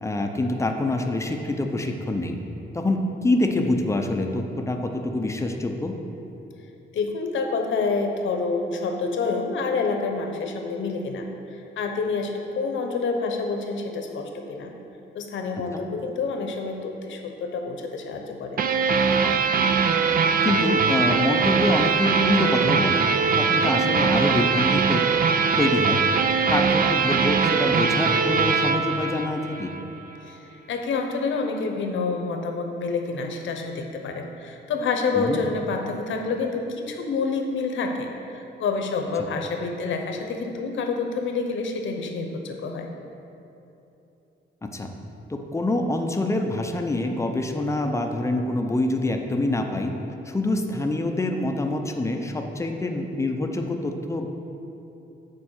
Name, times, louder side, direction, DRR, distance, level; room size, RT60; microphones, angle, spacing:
voice 1, 0.0-2.4 2.7-5.9 15.7-15.8 20.4-23.1 23.3-25.0 25.6-26.0 26.5-29.7 35.1-35.4 44.6-44.9 45.3-49.9 50.3-54.3, left 2 dB, 15° left, 4 dB, 0.5 m, -25 dB
voice 2, 6.9-11.3 11.8-14.7 15.1-18.6 30.3-38.1 38.3-42.9, left 4 dB, 75° left, 4 dB, 0.9 m, -28 dB
sound 1, 18.6-29.8, right 5 dB, 45° right, 0.4 m, -21 dB
8.8 x 4.5 x 6.4 m, 2.9 s
wide cardioid pair, 155°, 20 cm